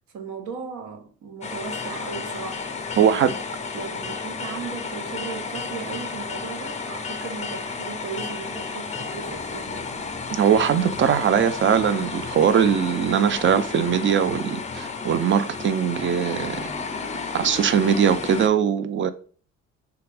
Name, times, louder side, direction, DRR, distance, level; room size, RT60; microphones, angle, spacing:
voice 1, 0.1-2.7 2.9-3.3 3.7-10.0, right 6 dB, 75° right, 0.9 m, -36 dB
sound 1, 1.4-18.5, left 4 dB, 25° left, 0.4 m, -32 dB
voice 2, 3.0-3.3 10.3-16.7 17.3-19.1, right 8 dB, 40° right, 0.4 m, -21 dB
3.4 x 2.4 x 3.3 m
cardioid pair, 90°, 30 cm